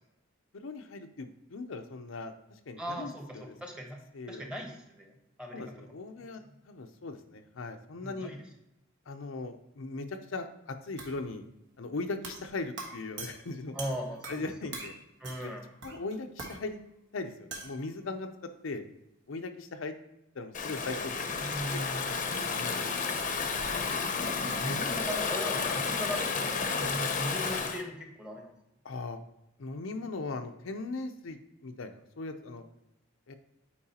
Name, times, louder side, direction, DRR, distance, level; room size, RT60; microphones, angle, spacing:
voice 1, 0.6-2.3 2.7-3.6 4.1-4.5 5.5-6.4 6.7-8.3 9.1-11.4 11.8-13.8 14.3-14.9 15.4-15.5 15.8-16.8 17.1-18.3 18.6-18.8 19.3-19.9 20.3-21.3 22.5-23.0 24.4-25.0 28.8-29.2 29.6-32.6 33.3-33.4, left 3 dB, 85° left, 6 dB, 0.6 m, -39 dB
voice 2, 2.8-4.0 4.3-5.1 5.4-5.6 6.2-6.3 8.0-8.4 13.7-14.5 15.2-15.6 21.4-22.2 24.4-28.5, equal, 5° right, 1 dB, 1.1 m, -38 dB
sound 1, 11.0-11.2 12.2-12.5 12.8-14.5 14.7-15.0 15.2-15.6 15.8-16.6 17.5-17.8, right 3 dB, 65° right, 1.4 m, -43 dB
Stream / Ocean, 20.5-27.8, left 5 dB, 40° left, 0.7 m, -31 dB
8.6 x 4.7 x 2.8 m, 0.88 s
head